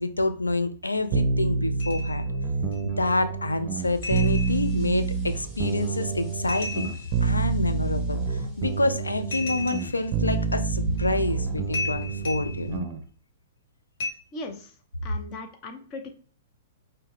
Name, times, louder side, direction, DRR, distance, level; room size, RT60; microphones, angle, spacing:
voice 1, 0.0-2.2 2.8-6.9 7.2-12.9, left 2 dB, 85° left, 9 dB, 0.4 m, -27 dB
sound 1, 1.1-13.0, right 5 dB, 35° right, 0.6 m, -28 dB
sound 2, 1.8-2.3 2.7-2.8 4.0-4.8 6.5-7.2 9.3-10.1 11.0-11.1 11.7-12.7 14.0-14.1, left 3 dB, 50° left, 1.7 m, -34 dB
sound 3, 3.8-12.8, left 1 dB, 5° left, 1.2 m, -44 dB
voice 2, 14.3-16.2, left 2 dB, 30° left, 5 dB, 0.8 m, -39 dB
5.3 x 2.2 x 3.4 m, 0.42 s
figure-of-eight pair, 110°, 0 cm